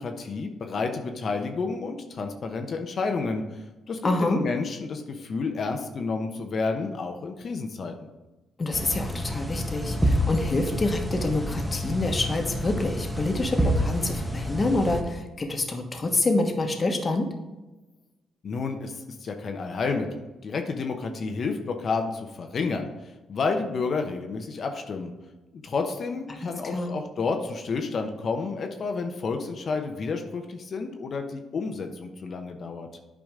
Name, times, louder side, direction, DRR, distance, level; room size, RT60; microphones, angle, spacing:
voice 1, 0.0-7.9 18.4-18.9 19.2-22.9 23.3-25.1 25.6-32.9, left 4 dB, 55° left, 4 dB, 0.9 m, -30 dB
voice 2, 4.0-4.4 8.6-17.3 26.3-27.0, left 2 dB, 35° left, 4 dB, 1.4 m, -27 dB
sound 1, 8.7-15.0, equal, 5° right, 1.4 m, -28 dB
9.0 x 5.0 x 3.7 m, 1.1 s
supercardioid pair, 60°, 0 cm